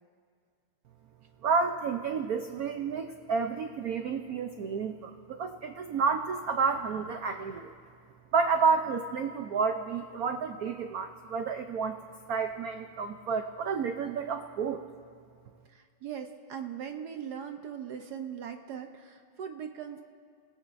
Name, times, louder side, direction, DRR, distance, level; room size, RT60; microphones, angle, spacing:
voice 1, 1.4-7.7 8.3-12.0 12.3-14.8, right 5 dB, 85° right, 6 dB, 0.8 m, -30 dB
voice 2, 15.7-20.0, right 8 dB, 65° right, 6 dB, 1.0 m, -40 dB
29.0 x 17.5 x 2.6 m, 2.2 s
omnidirectional pair, 2.4 m